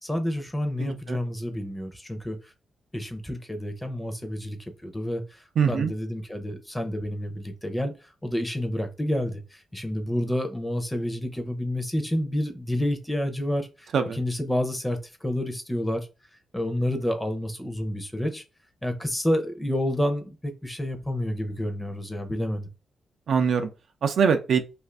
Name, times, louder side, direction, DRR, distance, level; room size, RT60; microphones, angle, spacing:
voice 1, 0.0-2.5 2.9-16.1 16.5-18.4 18.8-22.7, left 1 dB, 10° left, 0.6 m, -29 dB
voice 2, 0.8-1.2 5.6-5.9 13.9-14.2 23.3-23.7 24.0-24.6, right 6 dB, 65° right, 0.4 m, -23 dB
2.5 x 2.5 x 3.3 m
cardioid pair, 110°, 0 cm